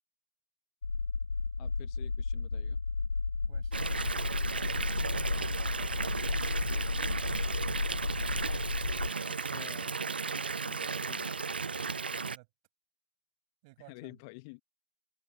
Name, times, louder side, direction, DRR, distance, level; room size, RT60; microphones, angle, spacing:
sound 1, 0.8-9.1, left 4 dB, 75° left, 0.4 m, -33 dB
voice 1, 1.6-2.8 9.2-10.1 10.6-11.3 13.9-14.6, left 30 dB, 25° left, 1.4 m, -50 dB
voice 2, 3.5-7.3 12.1-12.5 13.6-14.1, right 25 dB, 25° right, 7.9 m, -56 dB
Water tap faucet / Bathtub (filling or washing) / Fill (with liquid), 3.7-12.4, right 5 dB, 65° right, 0.3 m, -35 dB
open air
figure-of-eight pair, 140°, 6 cm